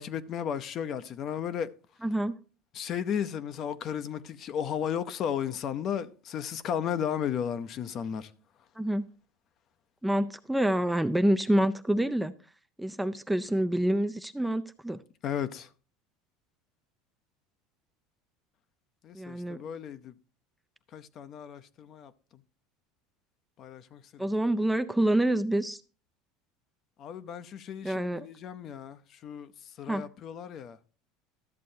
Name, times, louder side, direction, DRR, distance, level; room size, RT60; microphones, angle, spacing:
voice 1, 0.0-1.7 2.7-8.3 15.2-15.7 19.0-20.1 20.9-22.1 23.6-24.2 27.0-29.5 29.8-30.8, left 8 dB, 45° left, 0.7 m, -34 dB
voice 2, 2.0-2.4 8.8-9.1 10.0-12.3 12.8-15.0 19.1-19.6 24.2-25.8 27.8-28.3 29.9-30.1, right 1 dB, 5° right, 0.4 m, -27 dB
13.0 x 7.4 x 2.7 m
supercardioid pair, 125°, 0 cm